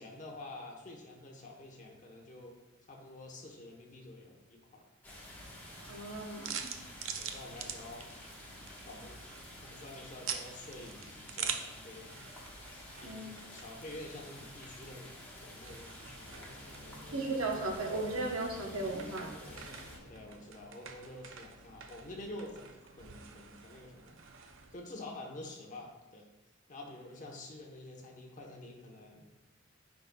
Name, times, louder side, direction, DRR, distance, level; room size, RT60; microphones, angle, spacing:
voice 1, 0.0-2.6 2.9-4.8 7.2-8.1 8.9-9.2 9.6-12.2 13.0-16.5 20.1-24.2 24.7-26.2 26.7-29.3, left 1 dB, 40° left, 0 dB, 1.1 m, -48 dB
sound 1, 5.0-20.0, left 1 dB, 10° left, 1.3 m, -50 dB
sound 2, 5.3-24.8, right 7 dB, 65° right, 0.6 m, -46 dB
voice 2, 5.9-6.7 13.0-13.4 17.1-19.3, right 2 dB, 85° right, 1 dB, 1.1 m, -36 dB
sound 3, 16.1-20.8, left 1 dB, 80° left, 1.1 m, -52 dB
9.4 x 5.3 x 2.3 m, 1.2 s
head